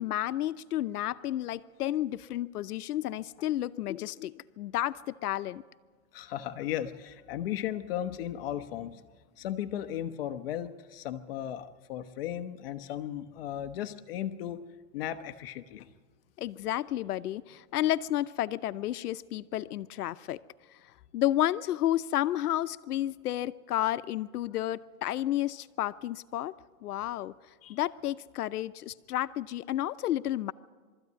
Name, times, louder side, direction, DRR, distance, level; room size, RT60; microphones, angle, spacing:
voice 1, 0.0-5.6 16.4-20.4 20.7-20.8 21.1-26.5 26.8-30.5, left 13 dB, 85° left, 13 dB, 0.8 m, -31 dB
voice 2, 6.1-9.0 9.4-14.7 14.9-15.9 24.6-24.7 27.6-27.8, left 11 dB, 40° left, 9 dB, 0.9 m, -36 dB
23.0 x 13.5 x 9.4 m, 1.5 s
supercardioid pair, 165°, 45 cm